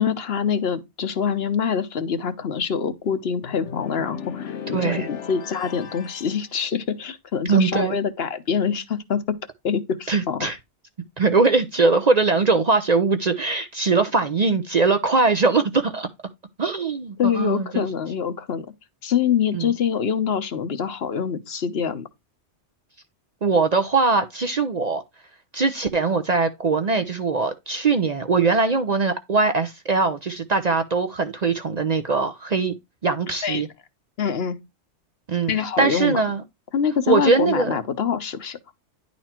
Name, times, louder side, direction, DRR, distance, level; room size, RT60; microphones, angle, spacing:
voice 1, 0.0-9.2 9.6-10.5 17.2-18.7 19.0-22.1 33.4-33.6 34.2-34.6 35.5-36.2 36.7-38.6, left 7 dB, 60° left, 1.1 m, -25 dB
sound 1, 3.4-6.4, left 7 dB, 85° left, 1.1 m, -35 dB
voice 2, 4.7-5.1 7.5-8.0 10.1-10.6 11.2-16.1 16.6-17.9 19.5-19.7 23.4-25.0 25.5-32.7 33.0-33.7 35.3-35.5 35.8-36.4 37.1-37.7, right 4 dB, 45° right, 0.6 m, -21 dB
10.0 x 4.2 x 4.3 m
omnidirectional pair, 1.2 m